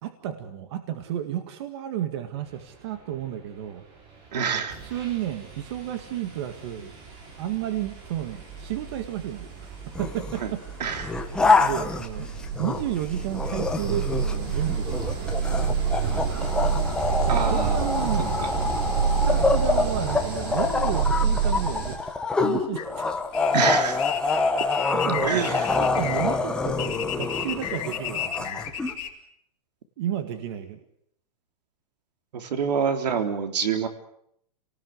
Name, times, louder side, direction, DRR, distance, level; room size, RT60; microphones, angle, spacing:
voice 1, 0.0-3.8 4.8-6.9 7.4-10.6 11.6-12.3 12.6-15.3 16.0-16.6 17.3-18.4 19.1-22.1 22.4-23.0 24.9-28.7 30.0-30.8, right 11 dB, 40° right, 8 dB, 1.9 m, -32 dB
sound 1, 4.2-4.3 4.7-22.0, right 6 dB, 25° right, 3.4 m, -29 dB
voice 2, 4.3-4.8 10.4-10.5 10.8-11.1 17.3-17.8 18.4-18.5 23.5-24.0 25.2-25.7 32.3-33.9, right 6 dB, 80° right, 7 dB, 3.9 m, -26 dB
sound 2, 9.9-10.4 10.9-13.0 13.3-28.9, left 4 dB, 5° left, 1.1 m, -26 dB
sound 3, 22.8-29.1, left 10 dB, 50° left, 4.7 m, -34 dB
29.5 x 19.0 x 7.9 m, 0.70 s
supercardioid pair, 180°, 21 cm